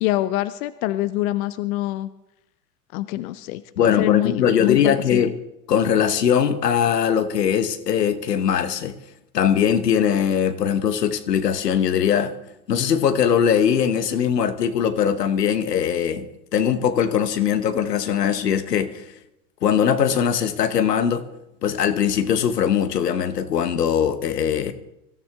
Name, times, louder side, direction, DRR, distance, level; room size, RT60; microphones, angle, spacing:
voice 1, 0.0-2.1 2.9-5.3, left 16 dB, 60° left, 0.8 m, -25 dB
voice 2, 3.8-5.3 5.7-9.0 9.3-12.3 12.7-19.0 19.6-21.3 21.6-24.7, left 8 dB, 90° left, 1.2 m, -21 dB
24.5 x 13.5 x 3.5 m
hypercardioid pair, 95°, 47 cm